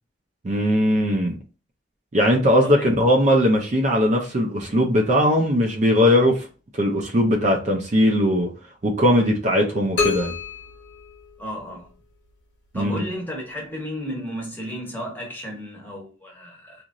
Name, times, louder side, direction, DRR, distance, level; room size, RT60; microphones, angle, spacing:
voice 1, 0.4-1.3 2.1-6.5 6.8-8.5 8.8-10.3 12.7-13.0, equal, 40° right, 0.5 m, -19 dB
sound 1, 10.0-11.9, left 6 dB, 85° left, 1.1 m, -28 dB
voice 2, 11.4-11.9 12.7-16.8, equal, 10° left, 0.9 m, -33 dB
2.9 x 2.5 x 2.5 m
head